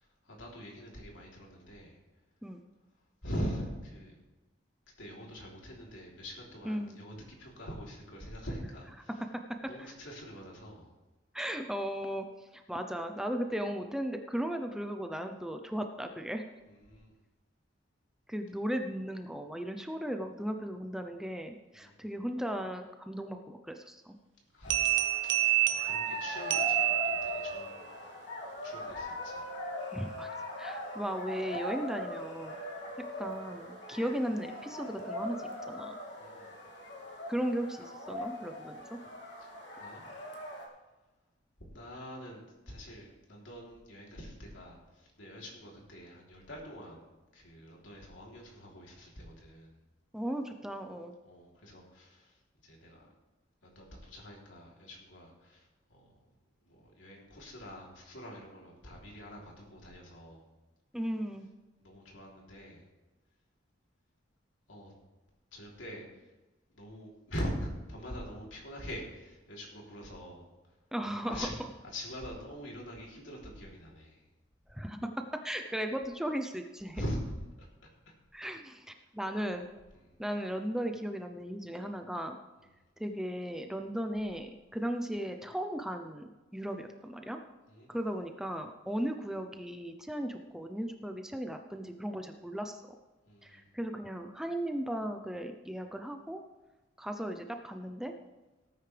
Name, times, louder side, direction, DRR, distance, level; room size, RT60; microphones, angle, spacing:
voice 1, 0.0-2.0 3.2-4.2 5.0-9.2 9.7-10.9 16.7-17.2 21.7-22.1 24.5-25.0 25.2-27.9 28.6-29.5 32.9-33.0 36.2-36.6 39.4-39.5 39.8-40.7 41.7-47.0 47.3-49.7 51.2-53.1 53.6-56.3 56.6-60.5 61.8-62.8 64.7-64.9 65.5-66.2 66.7-70.5 71.2-71.5 71.9-74.3 76.9-77.2 77.6-77.7 78.4-78.5 79.9-80.1 87.7-88.0 93.3-93.6, equal, 80° left, -2 dB, 3.4 m, -44 dB
voice 2, 6.6-7.0 9.8-9.9 11.3-16.5 18.3-24.2 29.9-30.3 30.6-32.6 33.2-36.0 37.3-39.0 50.1-51.1 60.9-61.5 70.9-71.5 74.7-77.0 78.3-78.9 79.1-79.7 80.2-82.4 83.0-87.4 87.9-93.0 93.4-96.4 97.0-98.1, equal, 5° right, 5 dB, 0.6 m, -36 dB
sound 1, 24.6-40.7, left 1 dB, 60° left, 2.4 m, -40 dB
sound 2, 24.7-27.6, right 16 dB, 70° right, 1.0 m, -29 dB
18.0 x 9.4 x 3.4 m, 1.2 s
head